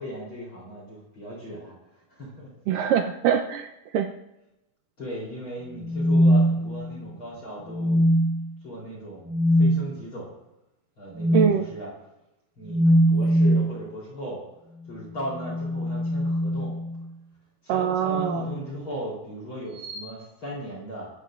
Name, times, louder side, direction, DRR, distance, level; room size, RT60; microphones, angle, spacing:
voice 1, 0.0-1.8 2.1-2.5 5.0-8.0 8.6-10.3 11.0-11.9 12.6-14.4 14.9-16.7 17.6-21.1, equal, 35° left, -3 dB, 4.1 m, -37 dB
voice 2, 2.7-4.1 11.3-11.7 17.7-18.5, right 8 dB, 80° right, 5 dB, 2.0 m, -23 dB
sound 1, 5.7-7.1 7.7-8.4 9.3-9.7 11.1-11.5 12.7-13.7 15.2-17.0 18.1-18.6 19.8-20.0, equal, 60° right, 3.7 m, -22 dB
23.0 x 15.0 x 2.5 m, 0.93 s
omnidirectional pair, 4.5 m